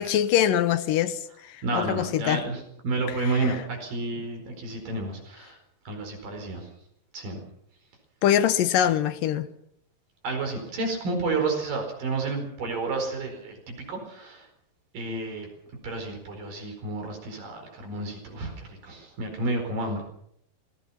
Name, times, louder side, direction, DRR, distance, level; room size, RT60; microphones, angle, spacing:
voice 1, 0.0-2.4 3.2-3.5 8.2-9.5, left 10 dB, 80° left, 2.6 m, -24 dB
voice 2, 1.6-5.6 5.9-6.7 7.1-7.4 10.2-14.5 14.9-15.5 15.8-20.0, right 3 dB, 75° right, 6.2 m, -31 dB
26.5 x 20.5 x 5.8 m
omnidirectional pair, 4.0 m